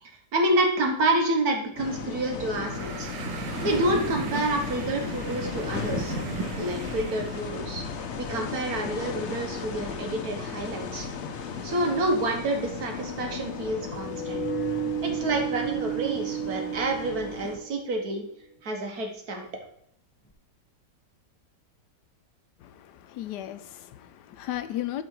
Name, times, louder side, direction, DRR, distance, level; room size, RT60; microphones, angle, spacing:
voice 1, 0.0-6.1 6.6-7.8 8.2-11.1 11.6-14.4 15.0-18.3 18.6-19.5, right 1 dB, 60° right, 3 dB, 1.7 m, -28 dB
sound 1, 1.8-17.6, left 5 dB, 55° left, 0.9 m, -36 dB
sound 2, 2.5-7.6, right 6 dB, 85° right, 1.4 m, -37 dB
sound 3, 11.2-18.0, right 6 dB, 15° left, 0.4 m, -34 dB
voice 2, 22.6-25.0, left 13 dB, 75° left, 11 dB, 1.1 m, -35 dB
11.0 x 3.8 x 4.6 m, 0.70 s
omnidirectional pair, 1.9 m